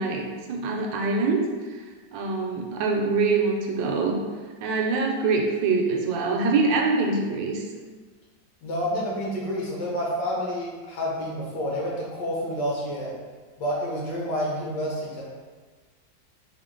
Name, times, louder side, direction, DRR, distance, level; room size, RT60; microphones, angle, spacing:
voice 1, 0.0-1.4 2.1-4.2 4.6-7.6, right 4 dB, 80° right, 1 dB, 1.3 m, -24 dB
voice 2, 8.6-13.1 13.6-15.2, equal, 70° left, -4 dB, 1.7 m, -29 dB
4.2 x 2.9 x 3.7 m, 1.4 s
omnidirectional pair, 2.0 m